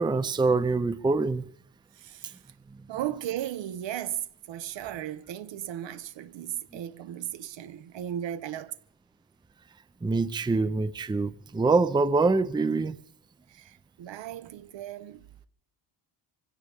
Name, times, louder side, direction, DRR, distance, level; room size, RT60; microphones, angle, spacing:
voice 1, 0.0-1.5 10.0-13.0, right 3 dB, 10° right, 0.5 m, -25 dB
voice 2, 2.0-2.4 2.9-8.7 13.5-15.2, right 11 dB, 70° right, 1.0 m, -36 dB
24.0 x 16.5 x 3.6 m
cardioid pair, 95°, 46 cm